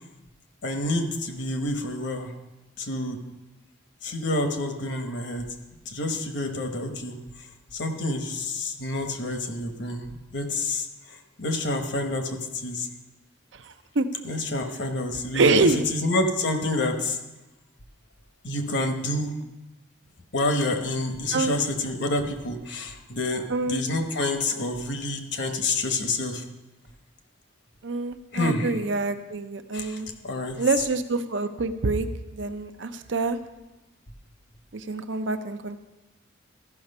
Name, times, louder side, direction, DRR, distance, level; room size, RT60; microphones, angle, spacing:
voice 1, 0.6-2.3 2.8-3.2 4.0-5.5 5.8-12.9 14.2-17.2 18.4-19.3 20.3-26.4 28.3-28.8 29.7-30.6, left 2 dB, 65° left, 5 dB, 1.1 m, -28 dB
voice 2, 15.3-15.8 21.3-21.5 23.5-23.8 27.8-30.1 30.6-32.1 32.3-33.4 34.7-35.8, right 3 dB, 70° right, 9 dB, 0.6 m, -25 dB
13.5 x 5.9 x 5.4 m, 1.0 s
head